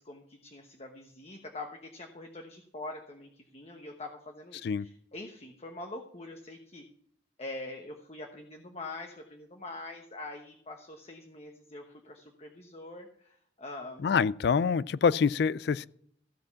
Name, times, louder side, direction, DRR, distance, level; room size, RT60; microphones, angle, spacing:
voice 1, 0.0-6.8 7.4-14.0, left 2 dB, 35° left, 1.1 m, -44 dB
voice 2, 14.0-15.9, left 6 dB, 60° left, 0.3 m, -26 dB
15.0 x 5.1 x 6.9 m
head